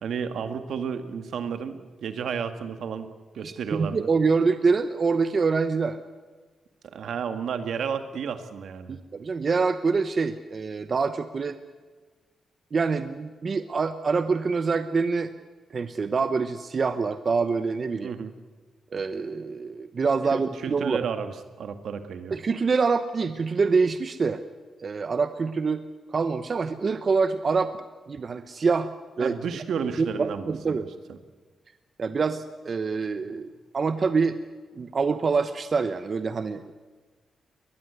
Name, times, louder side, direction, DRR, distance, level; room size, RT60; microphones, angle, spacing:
voice 1, 0.0-3.1 3.3-4.1 6.8-9.0 18.0-18.3 20.3-22.4 29.2-30.9, right 6 dB, 75° right, 8 dB, 1.9 m, -32 dB
voice 2, 3.4-6.0 8.9-11.5 12.7-15.3 15.7-18.1 18.9-21.1 22.3-24.4 24.8-28.9 29.2-29.3 30.0-30.9 32.0-34.4 34.7-36.7, right 4 dB, 40° right, 10 dB, 1.0 m, -25 dB
22.0 x 20.5 x 8.2 m, 1.4 s
cardioid pair, 110°, 0 cm